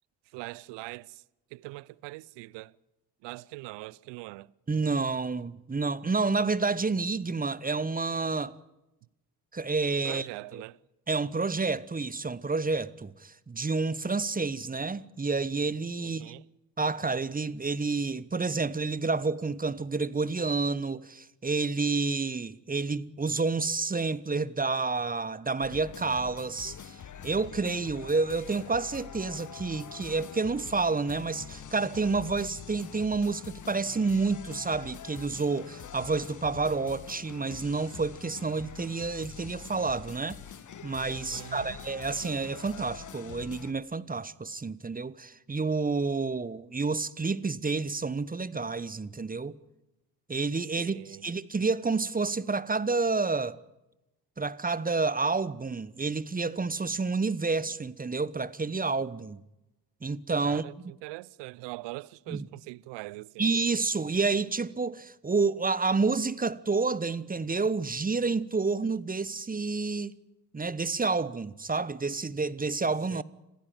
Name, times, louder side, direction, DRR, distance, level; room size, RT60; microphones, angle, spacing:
voice 1, 0.3-1.2 1.5-2.8 3.2-4.5 10.0-10.8 16.0-16.5 41.3-41.8 50.8-51.3 60.4-63.5 73.1-73.2, right 21 dB, 60° right, 0.7 m, -42 dB
voice 2, 4.7-8.5 9.5-10.3 10.5-10.6 11.1-16.3 16.8-40.4 40.8-49.6 50.3-53.6 54.4-59.4 60.0-60.6 62.3-62.5 63.4-70.1 70.5-73.2, right 4 dB, 15° right, 1.0 m, -29 dB
sound 1, 25.6-43.7, left 8 dB, 40° left, 1.4 m, -45 dB
27.0 x 15.5 x 9.0 m
hypercardioid pair, 50°, 48 cm